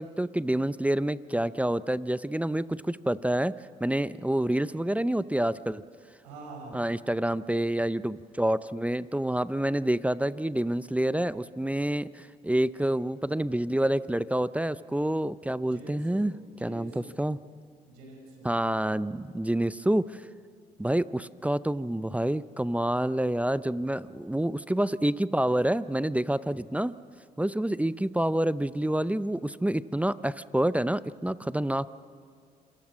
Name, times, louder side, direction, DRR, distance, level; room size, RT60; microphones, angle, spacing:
voice 1, 0.0-3.5 3.8-5.8 6.7-16.3 16.6-17.4 18.4-20.2 20.8-27.0 27.4-31.9, right 1 dB, 5° right, 16 dB, 0.6 m, -28 dB
voice 2, 6.2-6.8 15.6-16.2 16.6-17.1 17.9-18.5, right 2 dB, 90° right, 1 dB, 5.7 m, -45 dB
27.0 x 22.0 x 6.3 m, 2.3 s
hypercardioid pair, 60°, 19 cm